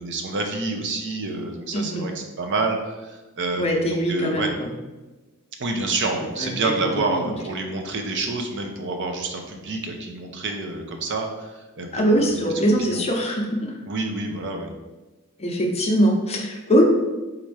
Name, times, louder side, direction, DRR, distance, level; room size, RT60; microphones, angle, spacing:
voice 1, 0.0-4.5 5.6-13.0 13.9-14.7, right 3 dB, 55° right, 3 dB, 0.6 m, -28 dB
voice 2, 1.7-2.1 3.6-4.5 6.4-6.7 7.1-7.3 11.9-13.7 15.4-16.9, equal, 30° left, 1 dB, 0.6 m, -22 dB
4.2 x 2.5 x 4.7 m, 1.2 s
head